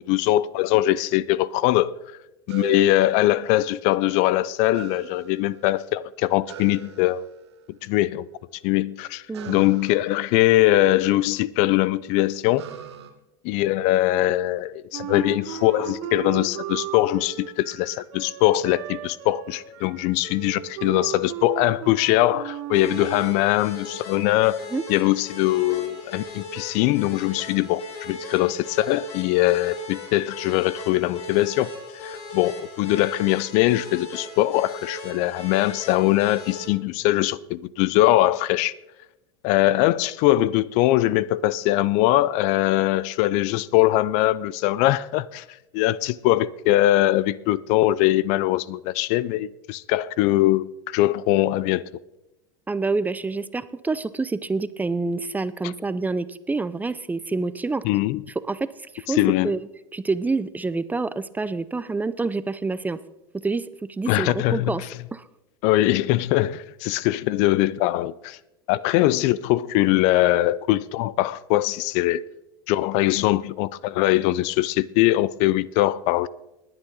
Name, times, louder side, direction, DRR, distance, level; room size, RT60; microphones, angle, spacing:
voice 1, 0.1-1.9 2.5-7.3 7.8-8.2 8.6-12.7 13.4-24.6 24.9-31.7 32.0-38.7 39.4-45.4 45.7-51.8 57.8-58.2 59.1-59.5 64.1-64.9 65.6-68.4 68.7-72.2 72.7-76.3, left 16 dB, 60° left, 0.5 m, -21 dB
sound 1, 2.5-3.9 4.7-5.9 6.5-7.7 9.3-11.4 12.6-13.1, right 12 dB, 85° right, 1.4 m, -41 dB
voice 2, 9.3-9.7 24.7-24.8 52.7-57.8 58.5-58.7 58.9-59.2 59.4-59.7 59.9-63.0 63.4-64.8 65.1-65.2, right 3 dB, 10° right, 0.5 m, -27 dB
Wind instrument woodwind instrument, 14.9-23.3, right 10 dB, 65° right, 2.2 m, -35 dB
sound 2, 22.7-36.7, left 2 dB, 80° left, 3.5 m, -38 dB
20.0 x 8.9 x 3.9 m
hypercardioid pair, 95°, 14 cm